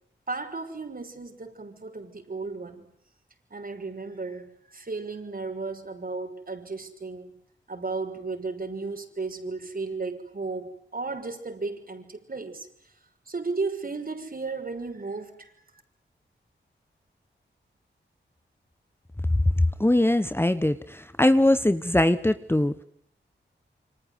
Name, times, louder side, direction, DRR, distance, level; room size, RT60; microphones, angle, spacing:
voice 1, 0.3-2.9 3.5-7.3 7.7-12.7 13.3-15.5, right 3 dB, 45° right, 6 dB, 6.0 m, -34 dB
voice 2, 19.8-22.8, left 1 dB, 10° left, 12 dB, 1.2 m, -22 dB
28.0 x 25.5 x 8.2 m, 0.66 s
wide cardioid pair, 75°, 20 cm